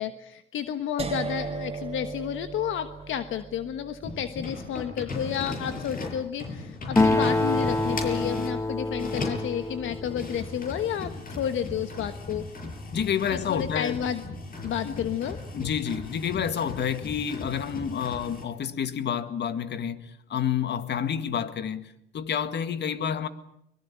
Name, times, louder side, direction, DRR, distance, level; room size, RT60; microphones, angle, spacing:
voice 1, 0.0-12.4 13.5-14.2 14.6-15.4, left 9 dB, 75° left, 1.4 m, -31 dB
sound 1, 1.0-6.9, right 5 dB, 30° right, 2.7 m, -38 dB
sound 2, 4.0-8.6 9.0-18.5, left 3 dB, 45° left, 7.5 m, -37 dB
Acoustic guitar, 7.0-10.8, left 2 dB, 15° left, 1.4 m, -26 dB
voice 2, 12.9-14.0 14.8-15.1 15.5-23.3, left 8 dB, 60° left, 2.0 m, -29 dB
23.5 x 22.5 x 9.0 m
cardioid pair, 90°, 20 cm